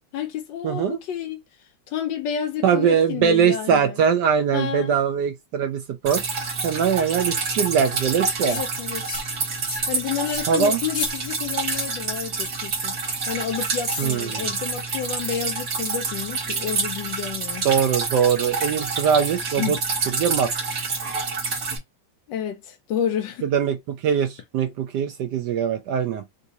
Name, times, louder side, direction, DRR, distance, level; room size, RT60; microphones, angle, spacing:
voice 1, 0.1-1.4 1.9-4.0 4.5-5.0 8.4-9.1 9.9-12.9 13.3-17.7 19.6-19.8 22.3-23.5, left 9 dB, 75° left, 1.1 m, -30 dB
voice 2, 0.6-1.0 2.6-6.2 6.6-8.6 10.5-10.8 14.0-14.5 17.6-19.8 20.1-20.5 23.4-26.2, right 7 dB, 75° right, 1.0 m, -22 dB
Drip, 6.1-21.8, right 4 dB, 50° right, 1.5 m, -28 dB
sound 1, 8.4-8.6 9.0-9.3 9.6-9.9 10.2-10.4 10.8-11.1 11.6-11.9 12.3-12.6 13.8-14.1, left 4 dB, 50° left, 1.1 m, -33 dB
3.6 x 2.6 x 2.7 m
omnidirectional pair, 2.2 m